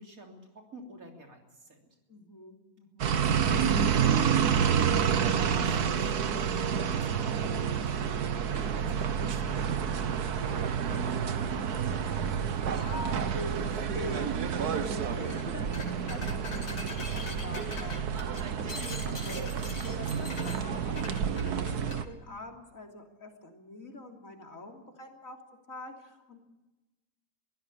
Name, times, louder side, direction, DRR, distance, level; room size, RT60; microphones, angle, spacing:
voice 1, 0.0-1.8 3.4-4.9 5.2-7.9 8.4-9.8 10.3-11.9, right 1 dB, 65° right, 2 dB, 3.8 m, -48 dB
voice 2, 2.1-3.2 12.7-25.4 25.7-26.4, left 1 dB, 60° left, 2 dB, 3.7 m, -44 dB
sound 1, 3.0-22.0, right 7 dB, 85° right, 1.7 m, -29 dB
sound 2, 15.2-15.4 15.7-22.0, left 3 dB, 85° left, 3.2 m, -42 dB
23.0 x 16.0 x 8.7 m, 1.1 s
omnidirectional pair, 1.6 m